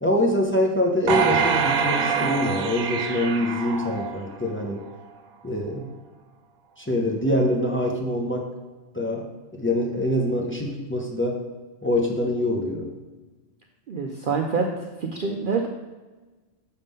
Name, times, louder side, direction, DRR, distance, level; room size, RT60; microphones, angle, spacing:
voice 1, 0.0-4.8 5.4-5.9 6.8-8.5 8.9-9.3 9.5-11.4 11.8-12.9, left 1 dB, 15° left, 0 dB, 0.4 m, -24 dB
sound 1, 1.1-4.5 5.0-5.1, right 5 dB, 90° right, 1.1 m, -25 dB
voice 2, 13.9-14.7 15.0-15.7, right 5 dB, 65° right, 1 dB, 0.5 m, -26 dB
6.5 x 3.6 x 5.3 m, 1.2 s
omnidirectional pair, 1.4 m